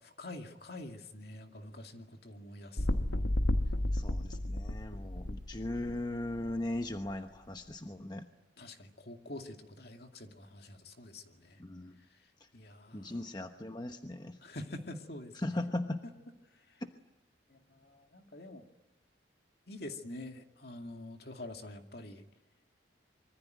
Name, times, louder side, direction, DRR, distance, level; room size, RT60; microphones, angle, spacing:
voice 1, 0.0-3.0 8.6-11.6 12.0-13.3 14.4-15.6 16.0-16.1 16.5-16.8 17.5-18.6 19.7-22.2, left 1 dB, 55° left, 5 dB, 2.4 m, -47 dB
sound 1, 2.8-6.5 7.1-7.2, left 1 dB, 80° left, 1.3 m, -32 dB
voice 2, 3.9-8.3 11.6-12.0 12.4-12.5 12.9-14.4 15.3-16.0 16.8-16.9, left 1 dB, 20° left, 6 dB, 1.1 m, -38 dB
25.5 x 24.0 x 9.3 m, 0.93 s
head